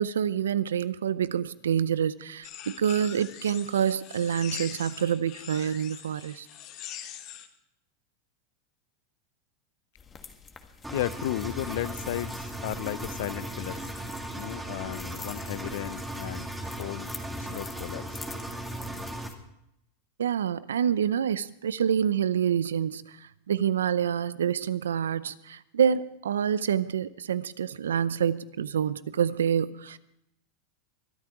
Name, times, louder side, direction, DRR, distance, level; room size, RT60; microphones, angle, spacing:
voice 1, 0.0-6.5 20.2-30.0, right 8 dB, 90° right, 0.6 m, -27 dB
sound 1, 2.4-7.5, left 11 dB, 50° left, 1.5 m, -42 dB
sound 2, 10.0-19.3, left 5 dB, 25° left, 1.5 m, -47 dB
Engine, 10.8-19.3, right 1 dB, 5° right, 2.3 m, -37 dB
voice 2, 10.9-13.9 14.3-16.5 16.8-17.1 17.4-18.2, left 15 dB, 70° left, 0.5 m, -34 dB
23.5 x 8.8 x 4.7 m
hypercardioid pair, 110°, 0 cm